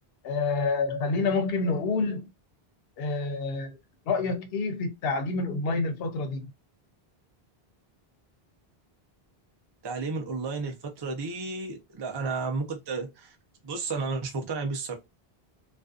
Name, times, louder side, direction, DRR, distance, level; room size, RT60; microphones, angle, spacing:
voice 1, 0.2-2.3 3.0-3.8 4.1-6.5, left 3 dB, 75° left, 0.8 m, -28 dB
voice 2, 9.8-13.4 13.6-14.9, right 4 dB, 35° right, 0.4 m, -32 dB
2.5 x 2.2 x 2.3 m
omnidirectional pair, 1.0 m